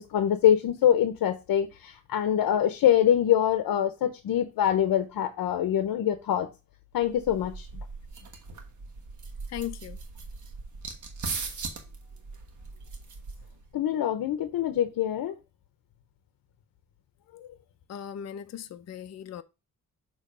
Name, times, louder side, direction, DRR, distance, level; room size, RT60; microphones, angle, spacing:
voice 1, 0.0-6.5 6.9-7.7 13.7-15.4, left 10 dB, 85° left, 0.7 m, -24 dB
sound 1, 7.0-13.7, right 4 dB, 60° right, 1.3 m, -39 dB
voice 2, 9.5-10.0 17.9-19.4, left 10 dB, 50° left, 0.5 m, -37 dB
6.6 x 3.0 x 4.9 m
wide cardioid pair, 115°, 34 cm